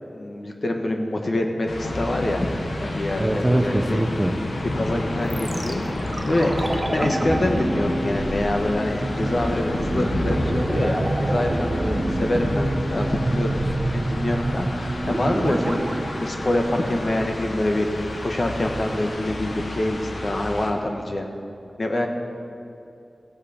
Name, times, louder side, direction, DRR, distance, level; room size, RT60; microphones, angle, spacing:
voice 1, 0.1-4.0 4.8-21.3 21.8-22.1, left 1 dB, 50° left, 3 dB, 1.2 m, -26 dB
sound 1, 1.7-20.7, left 1 dB, 70° left, 1.2 m, -30 dB
voice 2, 3.2-4.4, right 1 dB, 15° right, 5 dB, 0.7 m, -22 dB
sound 2, 5.3-17.3 17.5-17.6, right 1 dB, 40° right, 1.0 m, -27 dB
16.5 x 8.1 x 4.3 m, 2.6 s
wide cardioid pair, 75°, 0 cm